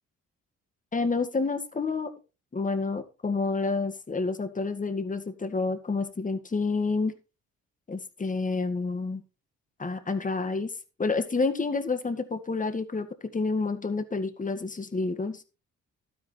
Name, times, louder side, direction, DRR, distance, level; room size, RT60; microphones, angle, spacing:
voice 1, 0.9-2.1 2.5-7.1 7.9-9.2 9.8-10.7 11.0-13.1 13.3-15.4, left 3 dB, 25° left, 9 dB, 1.8 m, -29 dB
12.5 x 9.6 x 3.3 m, 0.31 s
cardioid pair, 90°, 30 cm